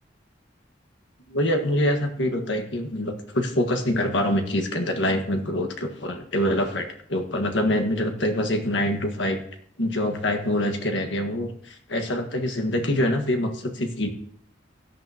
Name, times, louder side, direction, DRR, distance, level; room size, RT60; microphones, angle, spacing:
voice 1, 1.3-9.4 9.8-14.1, left 1 dB, 75° left, 5 dB, 1.7 m, -25 dB
17.0 x 11.0 x 2.9 m, 0.66 s
head